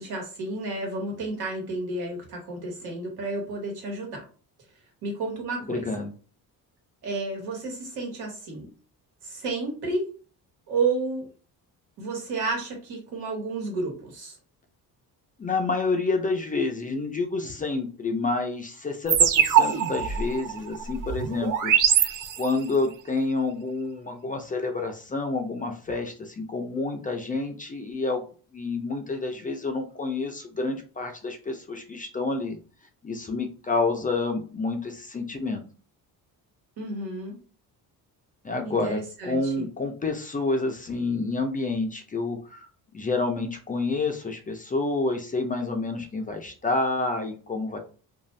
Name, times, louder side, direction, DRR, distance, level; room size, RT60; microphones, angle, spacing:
voice 1, 0.0-4.2 5.0-5.9 7.0-8.7 9.2-10.1 10.7-11.2 12.0-14.4 36.8-37.4 38.6-39.7, right 3 dB, 80° right, 1 dB, 1.4 m, -31 dB
voice 2, 5.7-6.1 15.4-28.2 28.5-32.6 33.0-35.6 38.4-47.8, left 3 dB, 20° left, 4 dB, 0.4 m, -29 dB
sound 1, 19.1-22.8, right 8 dB, 55° right, 0.5 m, -23 dB
2.6 x 2.3 x 3.1 m, 0.38 s
cardioid pair, 125°, 39 cm